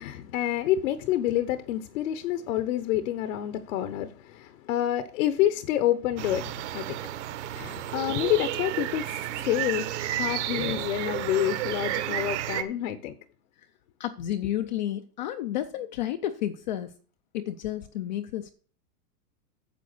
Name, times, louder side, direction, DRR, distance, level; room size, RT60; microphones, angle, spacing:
voice 1, 0.0-7.1 7.4-13.2, left 12 dB, 55° left, 1.0 m, -28 dB
sound 1, 6.2-12.6, right 13 dB, 50° right, 1.2 m, -32 dB
voice 2, 14.0-17.0 17.3-18.5, left 12 dB, 30° left, 0.4 m, -31 dB
9.3 x 7.1 x 6.7 m
supercardioid pair, 160°, 46 cm